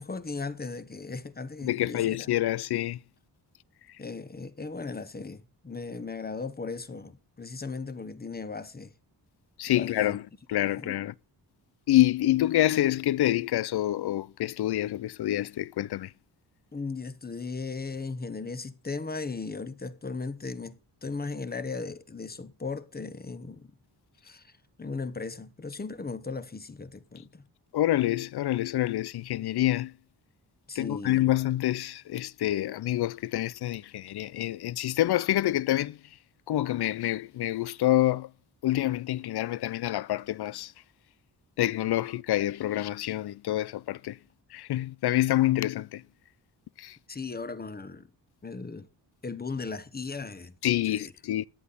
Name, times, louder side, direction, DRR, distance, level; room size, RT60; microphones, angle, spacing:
voice 1, 0.0-2.3 4.0-8.9 9.7-10.2 10.6-10.9 16.7-23.7 24.2-24.5 24.8-27.4 30.7-31.2 47.1-48.1 48.4-48.9 49.2-50.5 50.9-51.1, left 4 dB, 20° left, 1.1 m, -37 dB
voice 2, 1.6-3.0 9.6-10.2 10.5-11.1 11.9-16.1 27.7-29.9 30.8-36.0 36.5-38.3 38.6-40.7 41.6-44.2 44.5-46.0 46.8-47.0 50.6-51.5, left 14 dB, 65° left, 0.5 m, -27 dB
14.0 x 9.8 x 4.1 m
wide cardioid pair, 110°, 42 cm